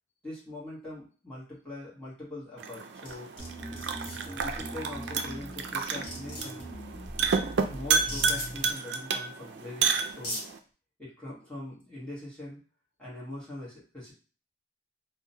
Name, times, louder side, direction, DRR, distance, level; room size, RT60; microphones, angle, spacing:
voice 1, 0.2-3.3 4.3-6.7 7.7-10.4 11.0-12.6 13.0-14.1, left 1 dB, 5° left, -8 dB, 1.2 m, -42 dB
sound 1, 2.6-10.6, right 5 dB, 65° right, 0.3 m, -31 dB
sound 2, 3.0-3.5 3.8-4.2 5.4-5.5 5.8-6.6 8.0-8.5 9.6-9.7 10.1-10.4, left 1 dB, 55° left, 1.1 m, -38 dB
sound 3, 3.4-8.7, right 1 dB, 35° left, 0.9 m, -42 dB
2.8 x 2.1 x 2.7 m, 0.37 s
head